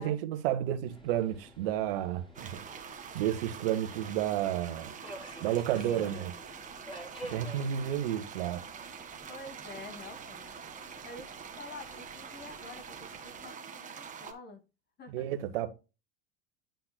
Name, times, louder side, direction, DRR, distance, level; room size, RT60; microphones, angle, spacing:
voice 1, 0.0-2.6 3.1-4.9 5.4-6.3 7.2-8.6 15.1-15.7, right 11 dB, 70° right, 1.5 m, -31 dB
Subway metro underground, 0.9-13.5, equal, 15° left, 3.9 m, -51 dB
sound 1, 2.3-14.3, right 7 dB, 25° right, 1.7 m, -45 dB
voice 2, 5.4-6.3 9.3-14.6 15.0-15.2, left 2 dB, 35° left, 2.4 m, -48 dB
10.5 x 5.8 x 2.2 m
hypercardioid pair, 105°, 30 cm